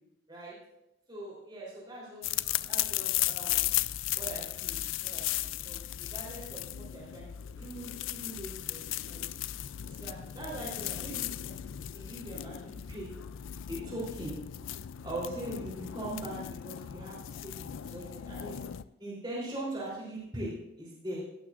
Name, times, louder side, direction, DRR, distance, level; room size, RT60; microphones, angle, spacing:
voice 1, 1.1-2.2 2.7-3.7 4.2-8.8 9.1-9.3 9.8-13.1 13.7-14.4 15.0-18.6 19.0-20.5 20.8-21.2, right 1 dB, 20° right, -7 dB, 3.5 m, -41 dB
sound 1, 2.2-18.8, left 13 dB, 75° left, 0.4 m, -36 dB
16.0 x 13.0 x 2.5 m, 0.87 s
head